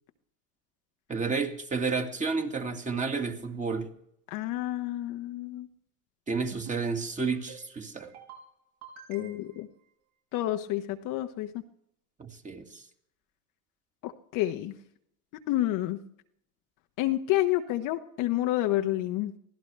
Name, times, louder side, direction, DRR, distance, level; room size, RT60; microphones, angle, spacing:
voice 1, 1.1-3.9 6.3-8.1 12.2-12.8, right 4 dB, 15° right, 4 dB, 2.0 m, -31 dB
voice 2, 4.3-5.7 9.1-9.7 10.3-11.6 14.0-14.7 15.5-16.0 17.0-19.3, left 15 dB, 45° left, 6 dB, 1.1 m, -29 dB
sound 1, 6.4-6.8 7.2-7.6 8.0-8.4 8.8-9.6, right 8 dB, 65° right, 7.7 m, -47 dB
24.5 x 16.5 x 3.4 m, 0.72 s
hypercardioid pair, 110°, 44 cm